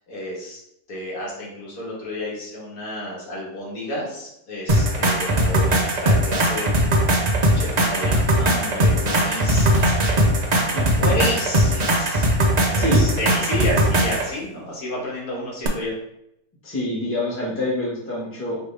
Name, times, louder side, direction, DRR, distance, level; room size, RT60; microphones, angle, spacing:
voice 1, 0.1-0.6 0.9-15.9, left 1 dB, 60° left, -4 dB, 1.7 m, -31 dB
sound 1, 4.7-14.3 15.6-15.7, right 1 dB, 85° right, 0.3 m, -19 dB
voice 2, 10.5-11.1 12.8-13.1 16.6-18.6, left 1 dB, 10° left, -6 dB, 1.0 m, -27 dB
4.9 x 3.0 x 3.2 m, 0.79 s
omnidirectional pair, 1.7 m